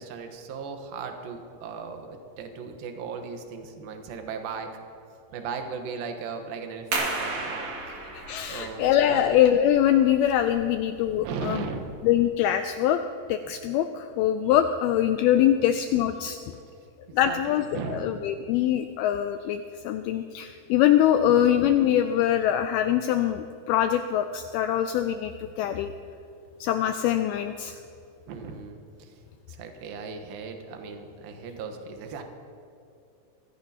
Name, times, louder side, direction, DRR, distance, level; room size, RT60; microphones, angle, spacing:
voice 1, 0.0-4.8 5.3-7.7 8.5-9.3 11.1-12.1 13.5-13.6 15.6-15.7 17.2-18.3 21.2-21.6 28.3-29.1 29.5-32.2, right 5 dB, 70° right, 5 dB, 2.8 m, -37 dB
sound 1, 6.9-12.3, right 3 dB, 45° right, 2.8 m, -35 dB
voice 2, 8.1-11.7 12.0-13.0 13.3-16.4 17.1-25.9 26.6-27.8, left 11 dB, 85° left, 8 dB, 2.2 m, -23 dB
23.5 x 16.0 x 2.9 m, 2.6 s
omnidirectional pair, 4.9 m